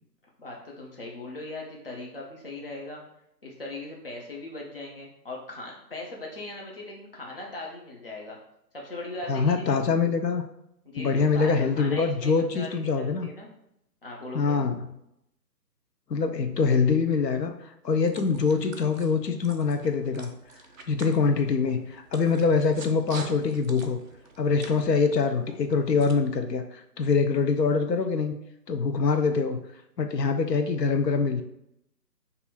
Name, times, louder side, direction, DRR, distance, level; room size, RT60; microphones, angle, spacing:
voice 1, 0.4-3.0 3.4-8.4 8.7-9.9 10.8-12.8 13.0-13.5 14.0-14.6, left 2 dB, 35° left, -2 dB, 0.5 m, -39 dB
voice 2, 9.3-10.4 11.0-13.3 14.3-14.8 16.1-17.5 17.8-20.3 20.9-24.0 24.4-26.6 27.0-28.3 28.7-29.6 30.0-31.4, left 5 dB, 80° left, 7 dB, 0.6 m, -24 dB
sound 1, 17.8-26.1, right 4 dB, 55° right, 0.5 m, -47 dB
2.7 x 2.4 x 4.1 m, 0.80 s
figure-of-eight pair, 160°, 49 cm